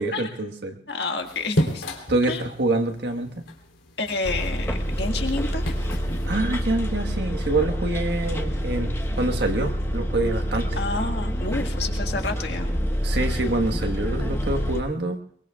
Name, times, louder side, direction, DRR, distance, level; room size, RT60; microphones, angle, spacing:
voice 1, 0.0-0.8 2.1-3.3 6.3-8.9 9.2-10.7 13.0-15.2, right 2 dB, 60° right, 4 dB, 1.5 m, -26 dB
voice 2, 0.9-1.8 2.3-2.4 4.0-5.6 10.8-12.9, left 3 dB, 60° left, 4 dB, 1.8 m, -29 dB
sound 1, 1.2-6.3, equal, 90° left, 3.4 m, -32 dB
Bus, 4.2-14.8, equal, 15° left, 1.2 m, -27 dB
23.0 x 23.0 x 2.4 m, 0.64 s
head